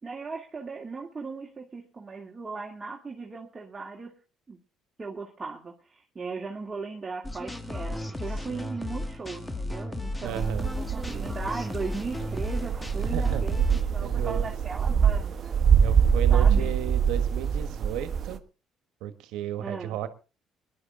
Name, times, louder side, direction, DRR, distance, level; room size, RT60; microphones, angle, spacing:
voice 1, 0.0-4.2 4.5-4.6 5.0-15.6 16.3-16.7 19.6-20.0, right 4 dB, 25° right, -1 dB, 2.7 m, -37 dB
sound 1, 7.2-13.8, left 1 dB, 15° left, 1.8 m, -35 dB
voice 2, 10.2-10.7 13.0-13.4 14.0-14.5 15.8-18.4 19.0-20.1, right 10 dB, 80° right, 11 dB, 1.5 m, -34 dB
sound 2, 10.3-18.4, right 7 dB, 50° right, 1.4 m, -24 dB
20.5 x 11.5 x 3.8 m, 0.34 s
supercardioid pair, 75°, 0 cm